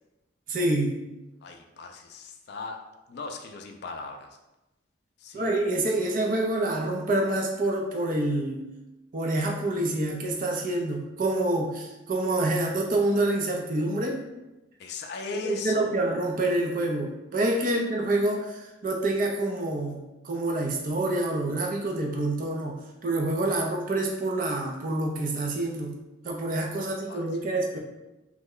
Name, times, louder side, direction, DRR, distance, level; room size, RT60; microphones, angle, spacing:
voice 1, 0.5-0.9 5.3-8.6 9.1-14.2 15.4-22.8 23.0-25.9 26.2-27.8, right 2 dB, 45° right, 1 dB, 0.4 m, -27 dB
voice 2, 1.4-2.8 3.1-4.4 5.2-5.6 14.8-15.9 17.6-17.7 26.7-27.2, left 4 dB, 55° left, 4 dB, 0.3 m, -39 dB
3.1 x 2.1 x 3.6 m, 1.0 s
head